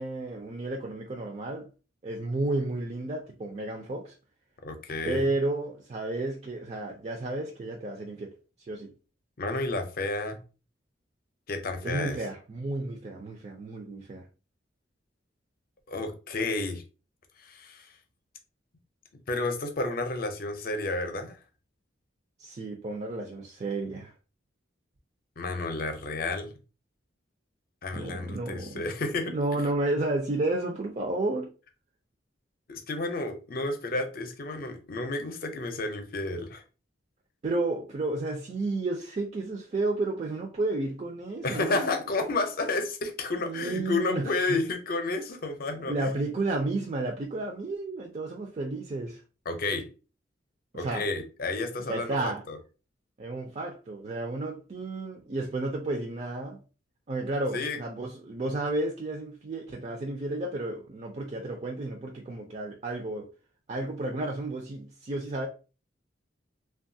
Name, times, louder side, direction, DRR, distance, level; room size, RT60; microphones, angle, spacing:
voice 1, 0.0-1.7 2.0-4.1 5.0-8.9 11.8-14.3 22.4-24.1 27.9-28.8 29.3-31.5 37.4-42.0 43.4-44.6 45.8-49.2 50.7-51.1 51.9-52.4 53.2-56.6 57.1-63.3 63.7-65.5, right 2 dB, 35° right, 0.4 m, -32 dB
voice 2, 4.6-5.3 9.4-10.4 11.5-12.2 15.9-16.8 17.4-17.9 19.3-21.4 25.4-26.5 27.8-29.4 32.7-36.6 41.4-46.1 49.5-49.9 50.7-52.6 57.5-57.8, left 3 dB, 50° left, 0.6 m, -31 dB
3.0 x 2.3 x 2.6 m
head